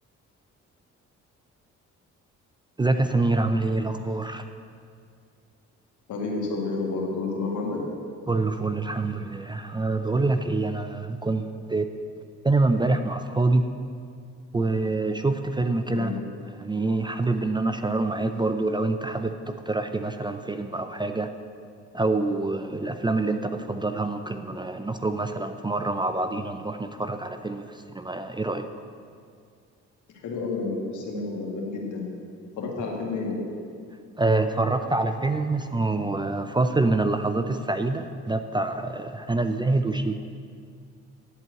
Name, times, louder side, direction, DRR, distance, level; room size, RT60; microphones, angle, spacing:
voice 1, 2.8-4.5 8.3-11.9 12.4-13.7 14.5-16.1 16.6-21.3 21.9-28.7 34.2-40.2, right 2 dB, 15° right, 8 dB, 0.4 m, -26 dB
voice 2, 6.1-7.8 15.9-16.1 30.2-32.0 32.6-33.4, left 3 dB, 75° left, -1 dB, 2.2 m, -30 dB
11.0 x 4.5 x 8.2 m, 2.2 s
cardioid pair, 90°, 30 cm